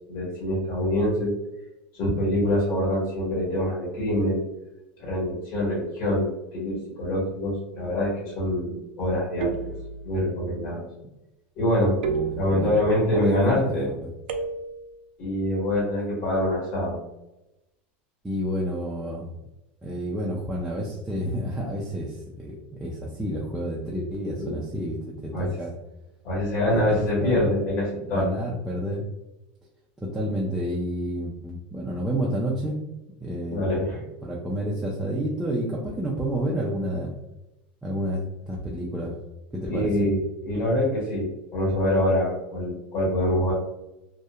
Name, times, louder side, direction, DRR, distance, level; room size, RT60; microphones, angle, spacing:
voice 1, 0.1-1.3 1.9-4.4 5.0-9.5 10.0-10.8 11.6-12.0 12.3-13.9 15.2-17.0 24.4-24.6 25.3-25.5 26.2-28.3 33.5-34.0 39.7-43.5, left 1 dB, 40° left, -5 dB, 1.5 m, -25 dB
sound 1, 7.0-7.6 9.4-10.3 12.0-13.0 14.3-15.0, right 5 dB, 90° right, 0.3 m, -32 dB
voice 2, 12.0-12.8 13.1-13.6 14.0-14.1 18.2-19.3 19.8-25.7 26.7-27.4 28.1-29.0 30.0-32.8 33.2-33.7 34.2-37.1 37.8-39.1 39.5-40.1, equal, 5° right, -6 dB, 0.3 m, -30 dB
2.7 x 2.1 x 2.3 m, 0.95 s
supercardioid pair, 160°, 6 cm